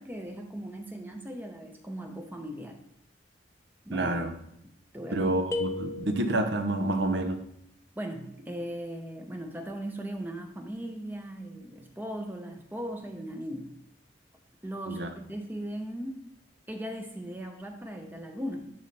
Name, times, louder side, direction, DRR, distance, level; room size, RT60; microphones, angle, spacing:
voice 1, 0.0-2.8 3.8-4.1 4.9-5.3 8.0-13.8 14.6-16.2 16.7-18.7, right 1 dB, 10° right, 4 dB, 0.7 m, -38 dB
voice 2, 3.9-4.3 5.1-7.4 14.9-15.1, right 2 dB, 65° right, 6 dB, 0.8 m, -28 dB
sound 1, 5.5-6.7, left 3 dB, 15° left, 0.3 m, -35 dB
11.0 x 3.9 x 3.3 m, 0.74 s
head